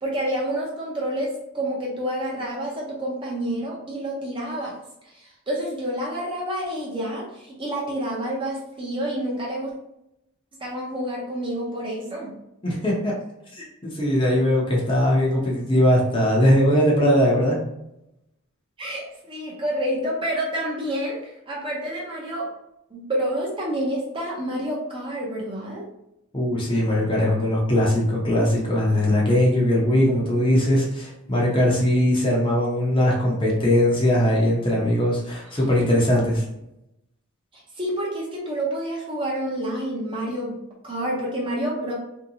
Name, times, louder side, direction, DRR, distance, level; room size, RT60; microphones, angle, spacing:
voice 1, 0.0-4.7 5.0-9.7 10.6-12.3 18.8-22.5 22.9-25.9 35.5-35.6 37.5-40.6 40.8-41.9, right 1 dB, 25° right, -4 dB, 0.6 m, -28 dB
voice 2, 12.6-13.1 13.5-17.6 26.3-36.4, left 1 dB, 25° left, -4 dB, 0.7 m, -20 dB
3.1 x 2.7 x 2.8 m, 0.85 s
head